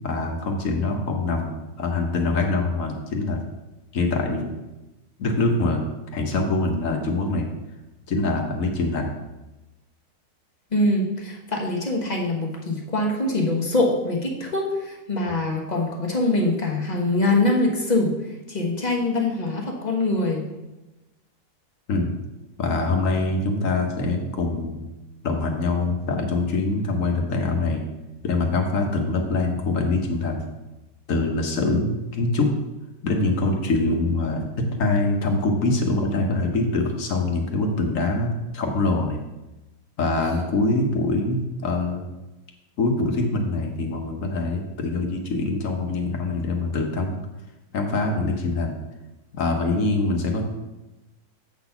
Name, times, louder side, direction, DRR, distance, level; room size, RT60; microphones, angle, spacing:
voice 1, 0.0-3.4 3.9-4.5 5.2-5.8 6.1-7.5 8.1-9.1 21.9-22.1 22.6-24.9 25.2-27.8 28.2-30.4 31.1-32.5 33.0-39.2 40.0-42.0 42.8-47.1 47.7-48.8 49.3-50.4, left 2 dB, 60° left, 2 dB, 1.4 m, -24 dB
voice 2, 10.7-18.1 18.5-20.5, left 2 dB, 30° left, -1 dB, 1.2 m, -23 dB
7.9 x 4.0 x 5.7 m, 1.0 s
omnidirectional pair, 1.6 m